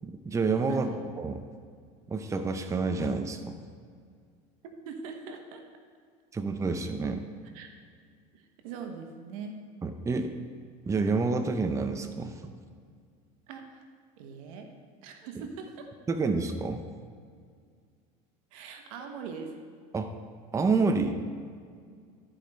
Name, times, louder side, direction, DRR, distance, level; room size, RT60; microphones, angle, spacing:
voice 1, 0.0-0.9 1.2-1.4 2.1-3.6 6.3-7.2 9.8-10.3 10.9-12.5 16.1-16.8 19.9-20.1 20.5-21.2, right 4 dB, 15° right, 7 dB, 0.6 m, -28 dB
voice 2, 0.7-1.0 4.8-5.6 7.5-7.7 8.3-9.6 13.5-13.8 14.2-14.7 15.0-15.9 18.5-19.5, right 5 dB, 85° right, 4 dB, 1.1 m, -41 dB
12.5 x 5.1 x 4.3 m, 2.1 s
supercardioid pair, 110°, 17 cm